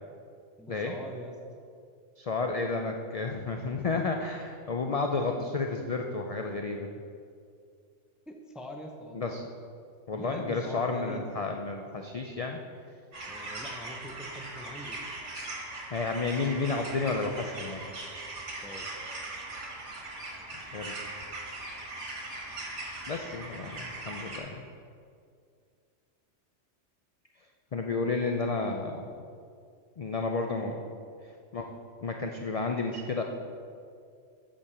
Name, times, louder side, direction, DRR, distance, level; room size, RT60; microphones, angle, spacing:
voice 1, 0.6-1.3 8.3-9.3 10.1-11.4 13.3-15.0 18.6-18.9, equal, ahead, 3 dB, 0.5 m, -43 dB
voice 2, 2.2-6.9 9.1-9.4 10.1-12.6 15.9-17.8 20.5-20.9 23.1-24.6 27.7-29.1 30.0-30.8 31.5-33.2, left 3 dB, 50° left, 3 dB, 0.4 m, -31 dB
sound 1, 13.1-24.4, right 2 dB, 65° right, 1.7 m, -40 dB
8.4 x 5.3 x 6.7 m, 2.3 s
omnidirectional pair, 1.3 m